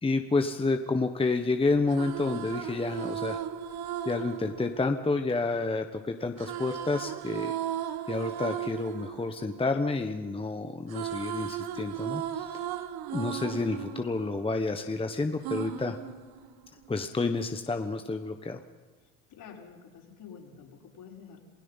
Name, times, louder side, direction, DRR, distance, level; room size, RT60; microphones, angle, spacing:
voice 1, 0.0-3.4 4.0-7.6 8.1-12.7 13.1-15.9 16.9-18.6, left 3 dB, 15° left, 7 dB, 1.2 m, -29 dB
sound 1, 1.7-5.8 6.4-10.4 10.7-14.9 15.4-16.9, right 10 dB, 60° right, 1.6 m, -37 dB
voice 2, 19.0-21.4, left 7 dB, 50° left, 1 dB, 5.4 m, -49 dB
28.0 x 17.0 x 5.7 m, 1.4 s
supercardioid pair, 95°, 41 cm